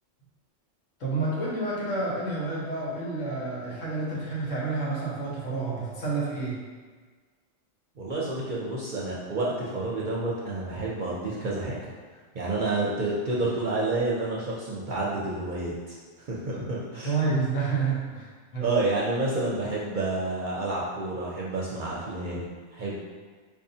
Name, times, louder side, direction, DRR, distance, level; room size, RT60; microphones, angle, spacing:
voice 1, 1.0-6.6 16.5-16.6 16.9-18.8, right 3 dB, 85° left, -7 dB, 1.5 m, -29 dB
voice 2, 8.0-11.8 12.3-17.1 18.6-23.0, right 2 dB, 55° right, -5 dB, 0.6 m, -29 dB
4.6 x 2.7 x 2.7 m, 1.5 s
omnidirectional pair, 1.3 m